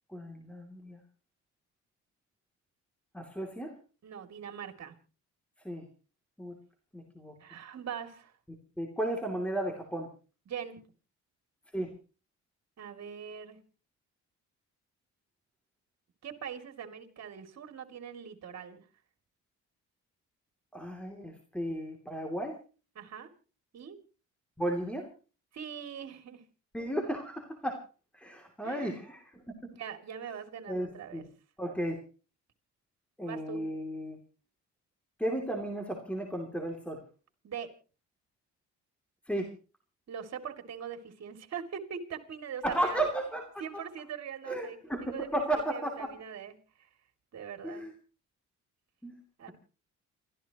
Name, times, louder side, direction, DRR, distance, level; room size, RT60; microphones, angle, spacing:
voice 1, 0.1-1.0 3.1-3.8 5.6-5.8 6.4-6.6 6.9-7.3 8.8-10.1 11.7-11.9 20.7-22.6 24.6-25.1 26.7-27.8 28.1-29.5 30.7-31.2 31.6-32.0 33.2-34.2 35.2-37.0 39.3-39.5 42.6-43.4 43.7-43.8 44.5-46.1 47.6-47.9 49.0-49.2, right 1 dB, 5° left, 2 dB, 2.8 m, -34 dB
voice 2, 4.0-4.9 7.4-8.3 10.5-10.8 12.8-13.6 16.2-18.8 22.9-23.3 23.7-24.0 25.5-26.4 28.6-29.0 29.8-31.2 33.2-33.6 37.4-37.7 40.1-43.0 43.6-45.3 45.5-46.9 47.3-47.8 49.4-49.5, right 8 dB, 60° right, 7 dB, 2.8 m, -42 dB
29.0 x 14.0 x 3.0 m, 0.35 s
cardioid pair, 90°, 30 cm